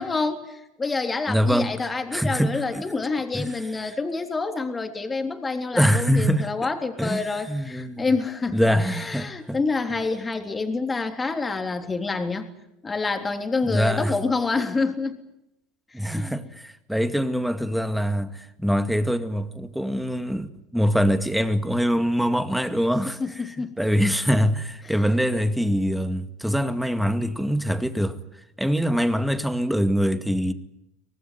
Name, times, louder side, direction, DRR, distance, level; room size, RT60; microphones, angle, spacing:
voice 1, 0.0-12.5 12.8-15.2 15.9-16.3 23.2-23.8, left 3 dB, 20° left, 3.6 m, -27 dB
voice 2, 1.3-1.8 2.1-2.9 3.3-3.5 3.8-3.9 5.7-6.7 7.0-8.1 8.5-9.6 13.6-14.2 15.9-23.2 23.8-28.2 28.6-30.5, equal, ahead, 2.1 m, -24 dB
24.5 x 19.0 x 9.6 m
hypercardioid pair, 80°, 0 cm